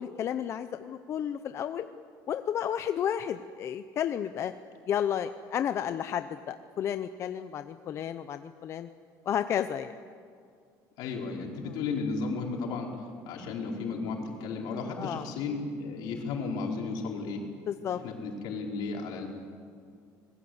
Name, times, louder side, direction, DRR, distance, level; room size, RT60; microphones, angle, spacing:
voice 1, 0.0-1.9 2.3-4.5 4.9-8.9 9.3-9.9 15.0-15.3 17.7-18.0, left 9 dB, 35° left, 10 dB, 0.6 m, -32 dB
voice 2, 11.0-12.9 13.3-17.4 17.9-19.3, left 4 dB, 70° left, 0 dB, 4.6 m, -34 dB
25.0 x 20.5 x 8.0 m, 2.2 s
cardioid pair, 170°, 8 cm